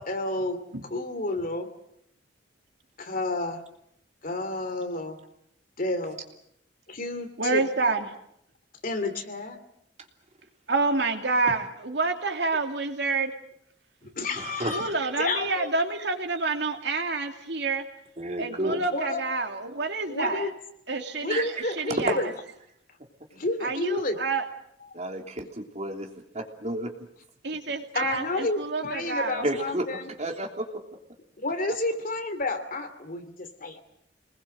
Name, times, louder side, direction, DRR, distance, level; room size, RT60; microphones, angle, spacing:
voice 1, 0.0-0.6 0.9-1.7 3.0-3.6 4.2-5.2 5.8-6.2 6.9-7.7 8.8-9.6 14.2-14.9 15.2-15.7 18.7-19.2 20.1-20.5 21.2-22.3 23.3-24.2 27.9-30.1 31.4-33.8, left 2 dB, 50° left, 7 dB, 2.8 m, -30 dB
voice 2, 7.4-8.1 10.7-13.3 14.7-17.8 18.4-20.4 20.9-21.4 21.8-22.2 23.6-24.4 27.4-29.4, right 3 dB, 70° right, 5 dB, 2.8 m, -28 dB
voice 3, 14.4-14.8 18.2-18.8 21.3-21.6 22.0-22.2 24.9-26.1 26.3-26.9 29.4-30.8, right 1 dB, 40° right, 3 dB, 3.2 m, -31 dB
27.0 x 20.5 x 7.8 m, 0.74 s
head